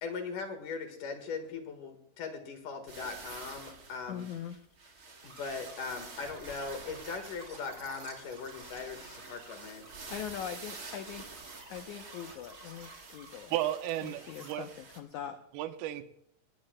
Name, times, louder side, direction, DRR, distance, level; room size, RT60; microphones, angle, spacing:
voice 1, 0.0-4.3 5.2-9.8 14.1-14.2, left 4 dB, 60° left, 6 dB, 2.8 m, -40 dB
sound 1, 2.9-15.0, right 4 dB, 45° right, 1.2 m, -49 dB
voice 2, 4.1-4.5 10.1-11.2 11.7-13.5 14.3-15.4, left 9 dB, 90° left, 7 dB, 1.6 m, -41 dB
sound 2, 5.2-14.6, right 2 dB, 30° right, 2.5 m, -53 dB
voice 3, 13.5-14.7 15.5-16.1, right 13 dB, 80° right, 8 dB, 2.6 m, -33 dB
19.5 x 18.5 x 2.2 m, 0.73 s
omnidirectional pair, 4.4 m